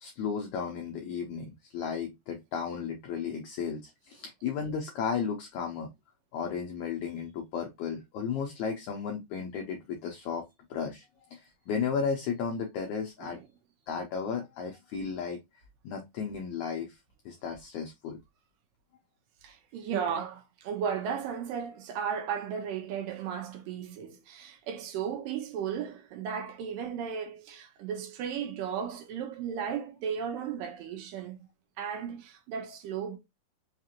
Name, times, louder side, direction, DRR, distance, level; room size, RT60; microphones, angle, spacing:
voice 1, 0.0-5.9 6.3-10.4 10.7-11.1 11.3-13.4 13.9-17.0 17.3-18.2, left 6 dB, 80° left, 1.7 m, -34 dB
voice 2, 19.4-31.4 31.8-33.2, right 7 dB, 75° right, 2.4 m, -35 dB
5.6 x 2.4 x 2.8 m
omnidirectional pair, 4.2 m